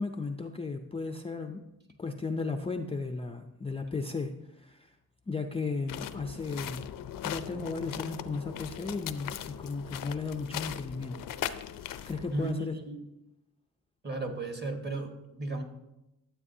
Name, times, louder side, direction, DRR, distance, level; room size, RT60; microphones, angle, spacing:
voice 1, 0.0-1.6 2.0-4.3 4.6-4.9 5.3-6.8 7.2-11.2 12.1-12.7, left 4 dB, 15° left, 5 dB, 0.4 m, -35 dB
sound 1, 5.9-12.5, left 10 dB, 65° left, 0.5 m, -39 dB
voice 2, 12.3-13.0 14.0-15.6, right 2 dB, 30° right, 4 dB, 1.4 m, -35 dB
12.5 x 7.9 x 2.7 m, 0.91 s
cardioid pair, 110°, 36 cm